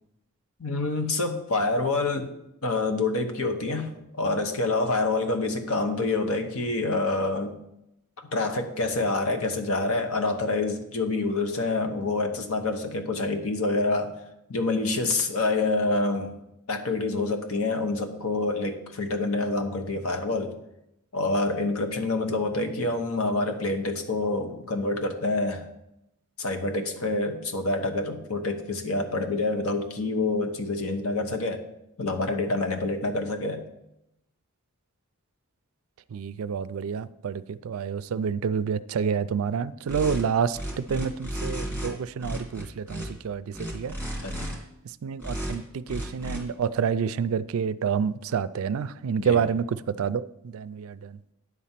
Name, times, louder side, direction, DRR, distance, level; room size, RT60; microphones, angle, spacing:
voice 1, 0.6-2.3 2.6-7.5 8.2-14.2 14.5-16.4 16.7-20.6 21.1-25.7 26.4-31.6 32.0-33.6 44.2-44.5 49.2-49.5, left 2 dB, 75° left, 1.1 m, -27 dB
voice 2, 36.1-44.0 45.0-51.2, right 6 dB, 70° right, 0.4 m, -28 dB
sound 1, 39.9-40.2 40.5-41.9 42.2-43.1 43.5-44.6 45.2-45.6 45.9-46.4, right 1 dB, 10° left, 2.2 m, -33 dB
9.7 x 4.2 x 7.4 m
head